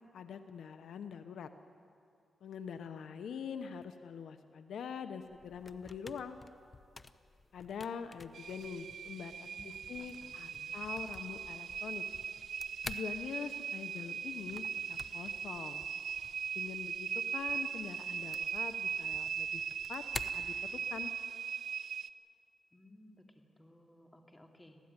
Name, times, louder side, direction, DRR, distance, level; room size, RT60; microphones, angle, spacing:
voice 1, 0.1-1.5 2.4-6.4 7.5-12.0 12.9-15.8 16.5-19.6 19.9-20.0 20.3-21.1, left 7 dB, 80° left, 9 dB, 1.0 m, -44 dB
sound 1, 5.2-21.2, left 3 dB, 30° left, 0.9 m, -52 dB
sound 2, 8.3-22.1, right 7 dB, 75° right, 0.6 m, -39 dB
voice 2, 9.5-10.8 22.7-24.8, left 1 dB, 15° left, 3 dB, 2.8 m, -59 dB
25.5 x 16.5 x 9.8 m, 2.4 s
cardioid pair, 90°, 0 cm